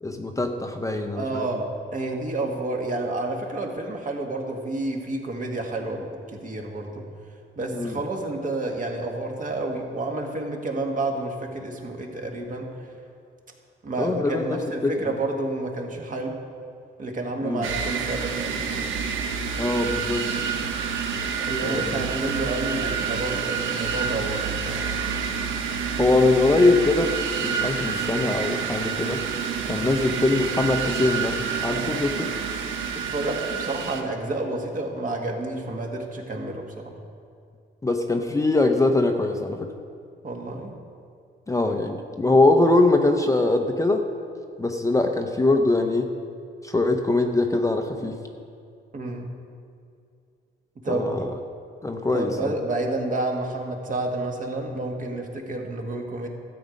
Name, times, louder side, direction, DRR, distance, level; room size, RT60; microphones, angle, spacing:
voice 1, 0.0-1.7 7.7-8.0 14.0-14.9 17.4-17.7 19.6-20.3 21.6-22.0 26.0-29.2 29.7-32.3 37.8-39.7 41.5-44.0 44.6-46.1 46.6-48.1 50.9-51.3 51.8-52.5, left 2 dB, 15° left, 4 dB, 0.7 m, -22 dB
voice 2, 1.2-7.0 7.6-12.7 13.8-16.4 17.0-18.8 21.4-24.9 31.7-32.1 32.9-36.9 40.2-40.7 48.9-49.3 50.8-51.2 52.1-56.3, right 2 dB, 40° right, 1 dB, 1.8 m, -30 dB
sound 1, 17.6-34.0, right 6 dB, 85° right, 1.0 m, -28 dB
13.0 x 7.8 x 5.2 m, 2.4 s
cardioid pair, 90°, 20 cm